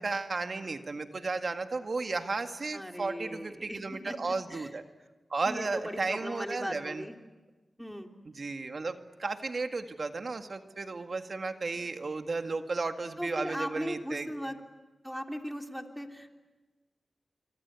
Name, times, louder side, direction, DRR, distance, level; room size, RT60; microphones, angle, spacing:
voice 1, 0.0-4.8 5.3-7.1 8.3-14.5, right 3 dB, 60° right, 7 dB, 1.9 m, -34 dB
voice 2, 2.7-4.7 5.4-7.2 7.8-8.1 13.2-14.6 15.0-16.3, equal, ahead, 3 dB, 3.2 m, -38 dB
26.0 x 25.0 x 8.2 m, 1.2 s
cardioid pair, 55°, 0 cm